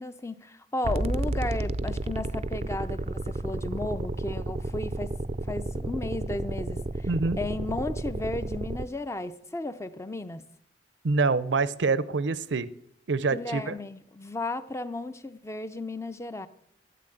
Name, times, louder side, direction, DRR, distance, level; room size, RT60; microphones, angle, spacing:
voice 1, 0.0-5.2 5.5-7.1 7.4-10.4 13.3-16.5, left 2 dB, 15° left, 12 dB, 0.6 m, -34 dB
sound 1, 0.8-8.8, right 2 dB, 35° right, 0.5 m, -32 dB
voice 2, 7.1-7.4 11.0-12.7 13.1-13.7, right 4 dB, 85° right, 17 dB, 0.6 m, -26 dB
11.0 x 10.5 x 7.8 m, 0.73 s
head